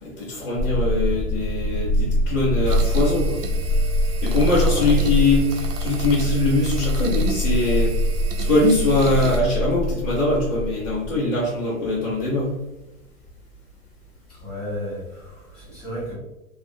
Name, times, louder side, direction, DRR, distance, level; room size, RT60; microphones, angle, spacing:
voice 1, 0.0-3.4 4.2-7.9 8.4-12.6, left 2 dB, 30° left, -11 dB, 0.7 m, -22 dB
sound 1, 0.6-11.2, equal, 40° right, 0.4 m, -24 dB
sound 2, 2.7-9.4, right 6 dB, 80° right, 0.6 m, -34 dB
voice 2, 4.4-4.9 14.3-16.1, equal, ahead, -15 dB, 1.3 m, -33 dB
2.9 x 2.4 x 2.6 m, 0.95 s
hypercardioid pair, 160°, 45 cm